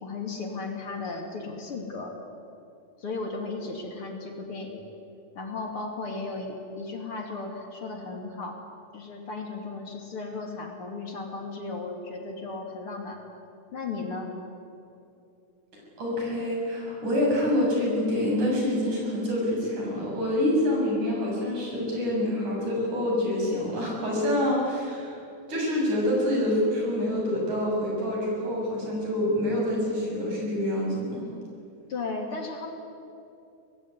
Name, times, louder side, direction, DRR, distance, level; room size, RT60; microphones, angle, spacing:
voice 1, 0.0-2.1 3.0-4.8 5.3-8.6 8.9-13.2 13.7-14.3 31.9-32.7, left 3 dB, 50° left, 2 dB, 3.4 m, -35 dB
voice 2, 16.0-25.2 25.5-31.2, left 1 dB, 80° right, -2 dB, 8.0 m, -26 dB
24.5 x 19.5 x 9.6 m, 2.6 s
omnidirectional pair, 3.4 m